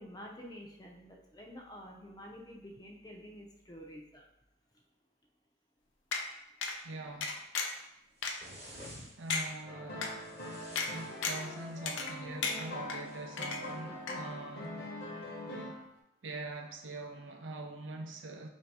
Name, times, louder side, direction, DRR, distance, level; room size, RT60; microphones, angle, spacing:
voice 1, 0.0-4.3, equal, 20° left, 0.5 m, -49 dB
sound 1, 6.1-6.2 6.6-6.8 7.2-7.8 8.2-8.3 8.8-8.9 9.3-9.4 10.0-10.1 10.8-10.9 11.2-11.5 11.9-12.2 12.4-13.0 13.4-13.8 14.1-14.2, left 5 dB, 80° left, 0.5 m, -34 dB
voice 2, 6.8-7.5 9.2-10.2 10.9-14.8 15.4-15.8 16.2-18.5, right 2 dB, 80° right, 0.6 m, -44 dB
sound 2, 8.2-9.5 10.2-12.0 13.0-13.8, equal, 35° right, 1.0 m, -52 dB
sound 3, 9.7-15.9, left 1 dB, 55° left, 0.9 m, -43 dB
3.4 x 2.7 x 4.6 m
head